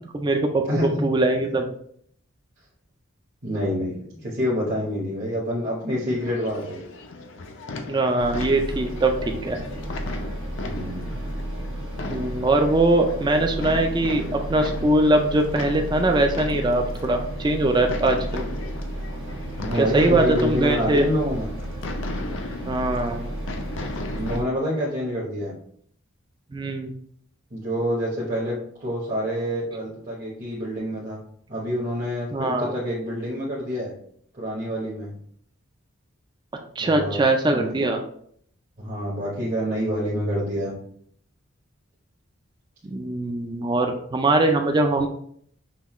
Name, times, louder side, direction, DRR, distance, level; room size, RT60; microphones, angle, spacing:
voice 1, 0.1-0.6 1.0-1.7 7.9-9.6 12.1-18.4 19.7-21.1 22.7-23.2 26.5-26.9 32.3-32.7 36.8-38.0 42.8-45.1, right 2 dB, 20° right, 3 dB, 0.3 m, -22 dB
voice 2, 0.7-1.1 3.4-6.8 10.7-11.2 19.6-21.5 24.1-25.6 27.5-31.2 31.5-33.9 34.4-35.1 36.8-37.7 38.8-40.7, equal, 40° right, -6 dB, 0.9 m, -27 dB
sound 1, 6.1-24.4, left 3 dB, 60° left, 0.5 m, -37 dB
sound 2, 8.2-24.4, right 1 dB, 65° right, 0.9 m, -33 dB
5.6 x 2.3 x 3.0 m, 0.64 s
head